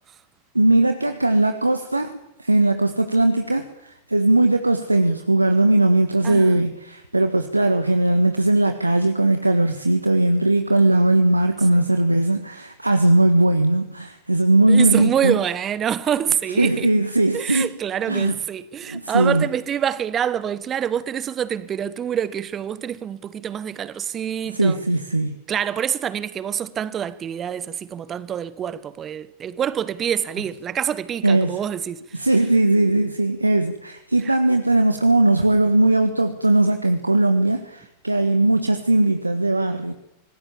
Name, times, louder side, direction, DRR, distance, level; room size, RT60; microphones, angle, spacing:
voice 1, 0.5-15.4 16.6-17.7 18.1-18.3 18.9-19.5 24.5-25.3 31.2-31.6 32.1-39.9, right 2 dB, 85° right, 1.6 m, -19 dB
voice 2, 6.2-6.6 14.7-16.9 17.3-24.8 25.5-32.2 34.2-34.3, right 9 dB, 25° right, 1.3 m, -26 dB
26.5 x 19.5 x 7.3 m
figure-of-eight pair, 90°, 0 cm